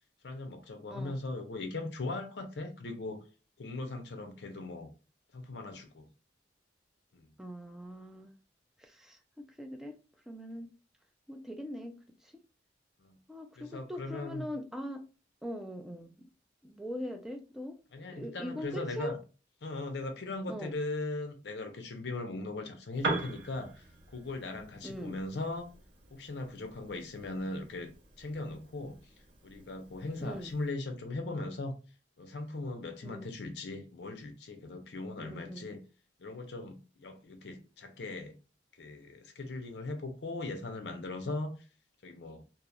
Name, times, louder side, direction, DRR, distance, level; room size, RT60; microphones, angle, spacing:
voice 1, 0.2-3.2 3.6-4.9 5.3-6.1 7.1-7.3 13.0-13.2 13.6-14.5 17.9-19.2 19.6-25.7 26.1-27.9 28.2-29.0 29.4-31.7 32.2-35.8 36.2-38.4 38.7-41.6 42.0-42.4, left 2 dB, 65° left, 0.5 m, -39 dB
voice 2, 0.9-1.2 7.4-8.3 8.8-10.0 10.3-10.7 11.3-12.3 13.3-15.0 15.4-16.3 16.6-17.8 18.1-19.2 20.5-20.8 24.8-25.2 30.2-30.5 33.0-33.3 35.2-35.7, equal, ahead, 0.3 m, -41 dB
Piano, 22.9-30.7, right 2 dB, 65° right, 0.6 m, -42 dB
2.7 x 2.0 x 2.2 m
head